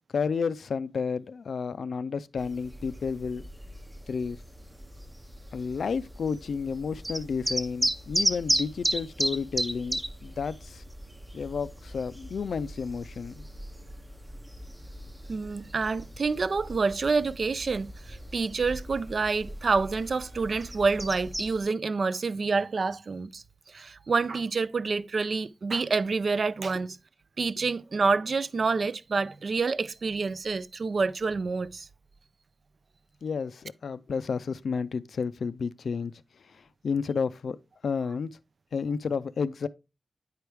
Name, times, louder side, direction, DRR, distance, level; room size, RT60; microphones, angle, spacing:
voice 1, 0.1-3.5 4.1-4.4 5.5-10.8 11.3-13.4 33.2-36.1 36.5-37.6 37.8-38.3 38.7-39.7, left 5 dB, 85° left, 0.4 m, -31 dB
sound 1, 2.4-21.6, right 1 dB, 10° right, 0.6 m, -35 dB
voice 2, 15.3-27.0 27.4-31.9, right 4 dB, 55° right, 0.3 m, -28 dB
9.4 x 4.6 x 3.3 m
wide cardioid pair, 130°, 0 cm